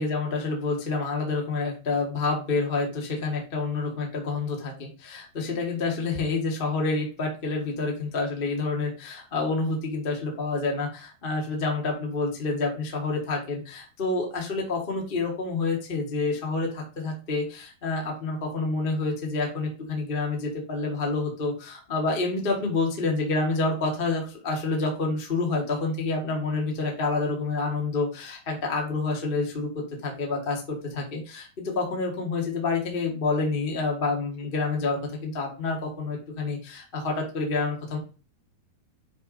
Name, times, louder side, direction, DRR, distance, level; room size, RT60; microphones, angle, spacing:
voice 1, 0.0-38.0, left 3 dB, 40° left, 0 dB, 0.7 m, -28 dB
9.5 x 3.6 x 4.0 m, 0.34 s
omnidirectional pair, 4.5 m